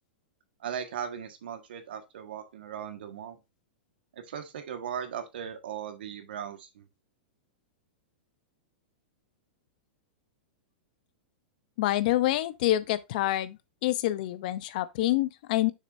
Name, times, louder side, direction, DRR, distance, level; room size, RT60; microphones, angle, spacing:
voice 1, 0.6-3.4 4.1-6.9, right 8 dB, 80° right, 1.5 m, -38 dB
voice 2, 11.8-13.6 13.8-15.7, left 15 dB, 55° left, 0.7 m, -27 dB
6.5 x 6.5 x 2.6 m
hypercardioid pair, 145°, 5 cm